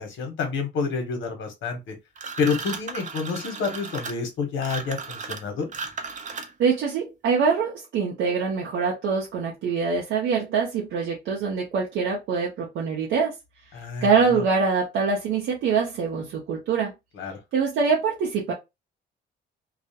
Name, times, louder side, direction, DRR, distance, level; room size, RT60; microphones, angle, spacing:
voice 1, 0.0-1.9 2.4-5.7 13.7-14.1 17.2-17.4, left 5 dB, 75° left, 0.9 m, -28 dB
sound 1, 2.2-6.8, right 4 dB, 40° right, 0.6 m, -35 dB
voice 2, 6.6-13.3 14.0-16.9 17.5-18.5, right 5 dB, 75° right, 0.7 m, -24 dB
2.3 x 2.1 x 2.7 m
cardioid pair, 90°, 20 cm